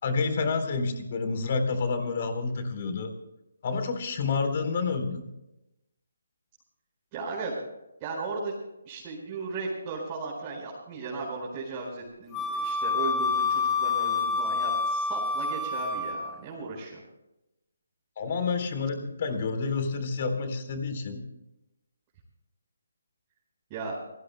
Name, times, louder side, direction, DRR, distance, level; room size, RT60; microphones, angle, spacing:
voice 1, 0.0-3.1 3.6-5.3 18.2-21.2, left 4 dB, 45° left, 7 dB, 3.8 m, -29 dB
voice 2, 7.1-7.6 8.0-8.5 8.8-17.0 23.7-24.0, right 3 dB, 25° right, -4 dB, 4.9 m, -36 dB
Wind instrument woodwind instrument, 12.3-16.4, left 4 dB, 15° left, 2.0 m, -28 dB
28.0 x 19.0 x 2.2 m, 0.91 s
figure-of-eight pair, 150°, 0 cm